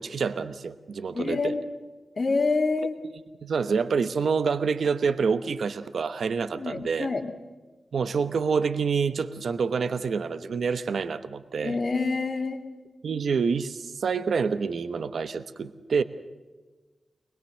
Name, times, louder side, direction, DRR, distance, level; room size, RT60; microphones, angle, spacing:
voice 1, 0.0-1.5 3.4-7.1 7.9-11.8 13.0-16.0, right 5 dB, 75° right, 11 dB, 1.0 m, -27 dB
voice 2, 1.1-1.6 2.2-3.0 6.5-7.2 11.6-12.7, left 3 dB, 40° left, 4 dB, 2.3 m, -27 dB
24.0 x 21.5 x 6.5 m, 1.3 s
wide cardioid pair, 170°, 0 cm